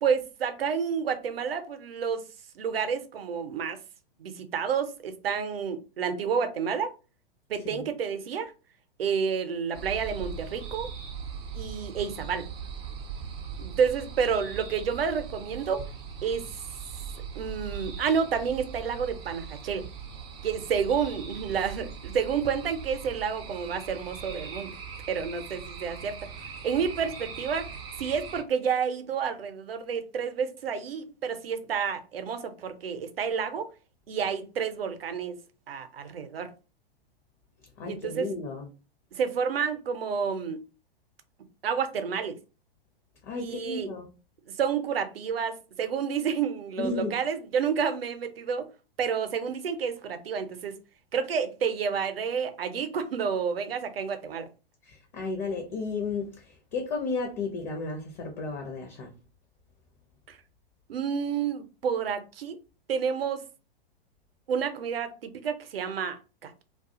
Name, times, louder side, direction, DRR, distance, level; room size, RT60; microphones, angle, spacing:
voice 1, 0.0-2.2 2.6-3.8 4.2-6.9 7.5-8.5 9.0-10.9 11.5-12.5 13.6-15.9 16.2-16.5 17.4-19.9 20.4-24.8 25.1-26.2 26.6-27.7 28.0-33.7 34.1-35.4 35.7-36.5 37.8-38.3 39.1-40.6 41.6-42.4 43.4-43.9 44.5-48.7 49.0-50.8 51.1-54.5 60.3-60.4 60.9-62.6 62.9-63.5 64.5-66.6, right 6 dB, 75° right, 0.6 m, -30 dB
sound 1, 9.7-28.4, right 6 dB, 20° right, 0.3 m, -40 dB
voice 2, 37.8-38.7 43.2-44.1 46.8-47.2 54.8-59.1, left 3 dB, 30° left, 0.6 m, -33 dB
2.3 x 2.3 x 2.7 m
figure-of-eight pair, 110°, 30 cm